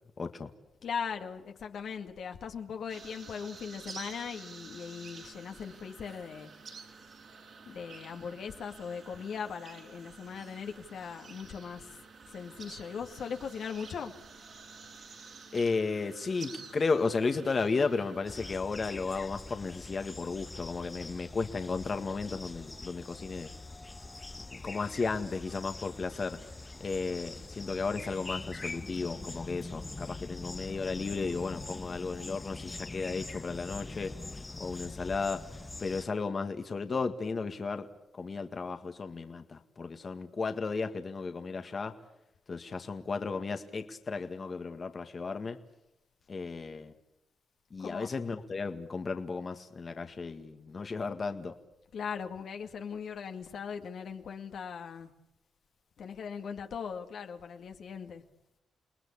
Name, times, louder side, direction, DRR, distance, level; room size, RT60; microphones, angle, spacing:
voice 1, 0.2-0.5 15.5-23.5 24.5-26.4 26.8-34.1 34.6-35.4 35.8-37.9 38.1-41.9 42.5-45.6 46.3-46.9 47.7-51.5, left 4 dB, 50° left, 7 dB, 1.8 m, -34 dB
voice 2, 0.8-6.5 7.7-12.0 12.3-14.1 47.8-48.1 51.9-55.1 56.0-58.2, left 6 dB, 75° left, 4 dB, 2.2 m, -39 dB
sound 1, 2.9-18.6, right 4 dB, 65° right, 7.6 m, -50 dB
sound 2, 18.2-36.0, left 2 dB, 25° left, 1.2 m, -44 dB
29.5 x 19.5 x 8.6 m, 0.86 s
supercardioid pair, 55°, 0 cm